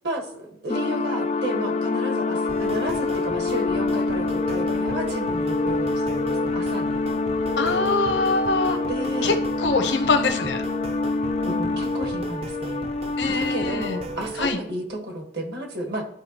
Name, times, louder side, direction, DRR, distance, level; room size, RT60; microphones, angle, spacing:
voice 1, 0.0-7.0 8.9-9.3 11.5-12.9 13.3-16.1, right 1 dB, 65° right, 2 dB, 1.5 m, -32 dB
sound 1, 0.7-14.3, left 3 dB, 40° left, 0.4 m, -26 dB
sound 2, 2.4-14.5, right 1 dB, 35° right, 0.5 m, -35 dB
voice 2, 7.6-8.8 9.2-10.6 13.2-14.0 14.4-14.6, left 3 dB, 80° left, 7 dB, 0.9 m, -23 dB
12.0 x 4.7 x 2.9 m, 0.76 s
head